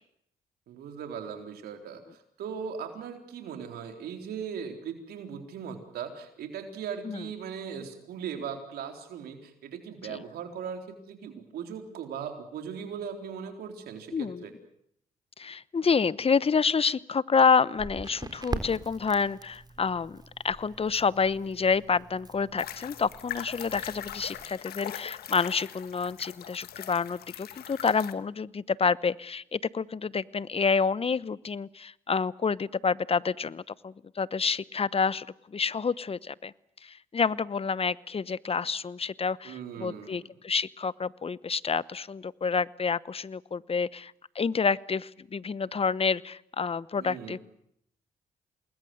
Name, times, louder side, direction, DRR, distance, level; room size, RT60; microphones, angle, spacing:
voice 1, 0.7-14.5 39.4-40.2 47.0-47.4, right 7 dB, 85° right, 5 dB, 4.0 m, -39 dB
voice 2, 14.1-14.4 15.4-36.5 36.8-47.4, left 5 dB, 40° left, 19 dB, 1.0 m, -28 dB
Crackle, 17.7-24.5, right 2 dB, 25° right, 3.7 m, -42 dB
sound 1, 22.6-28.1, left 11 dB, 80° left, 1.5 m, -41 dB
28.0 x 20.5 x 7.9 m, 0.71 s
supercardioid pair, 60°, 16 cm